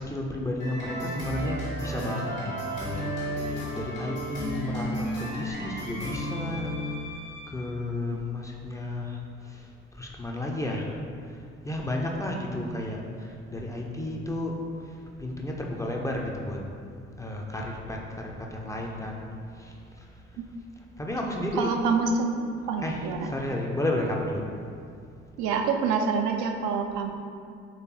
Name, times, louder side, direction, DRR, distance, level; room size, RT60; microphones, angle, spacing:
voice 1, 0.0-2.3 2.6-3.1 3.7-6.7 7.5-9.2 10.0-10.9 11.6-13.0 13.5-14.5 15.2-16.6 17.2-19.3 19.6-19.7 21.0-21.8 22.8-24.4, left 1 dB, 10° left, -1 dB, 0.5 m, -32 dB
sound 1, 0.6-7.5, equal, 80° left, 1.1 m, -33 dB
voice 2, 21.6-22.4 22.7-23.3 25.4-27.1, right 5 dB, 60° right, 4 dB, 0.4 m, -26 dB
3.8 x 3.2 x 2.9 m, 2.3 s
figure-of-eight pair, 50°, 34 cm